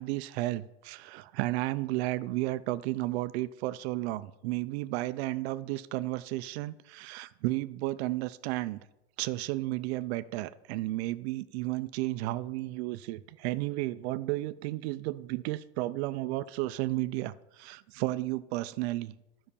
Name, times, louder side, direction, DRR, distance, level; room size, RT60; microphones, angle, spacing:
voice 1, 0.0-8.8 9.2-19.1, right 17 dB, 80° right, 14 dB, 0.5 m, -33 dB
11.0 x 5.7 x 6.9 m, 0.92 s
supercardioid pair, 140°, 31 cm